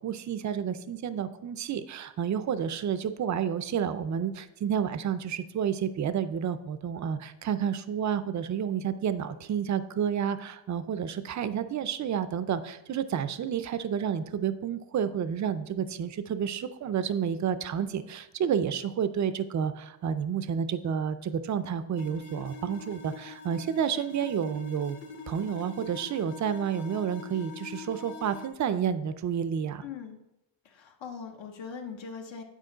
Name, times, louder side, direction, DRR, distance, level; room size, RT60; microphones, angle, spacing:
voice 1, 0.0-25.0 25.3-29.9, right 8 dB, 40° right, 13 dB, 0.4 m, -30 dB
sound 1, 22.0-28.5, left 3 dB, 25° left, 0.6 m, -43 dB
voice 2, 29.8-30.2 30.6-32.4, left 6 dB, 70° left, 3 dB, 1.0 m, -41 dB
10.0 x 5.1 x 3.8 m, 0.88 s
wide cardioid pair, 175°, 46 cm